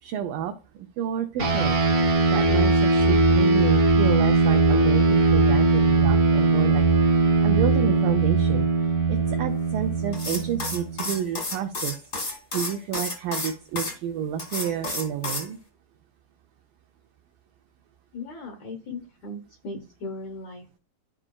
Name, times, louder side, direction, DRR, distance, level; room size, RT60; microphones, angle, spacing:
voice 1, 0.0-1.8 2.1-6.8 7.4-15.6, right 9 dB, 85° right, 4 dB, 1.9 m, -30 dB
sound 1, 1.4-11.1, right 3 dB, 50° right, 0.8 m, -20 dB
sound 2, 10.1-13.9 14.4-15.5, left 2 dB, 50° left, 0.8 m, -31 dB
voice 2, 18.1-20.8, left 2 dB, 80° left, 4 dB, 1.6 m, -38 dB
13.5 x 4.9 x 2.3 m, 0.35 s
omnidirectional pair, 4.6 m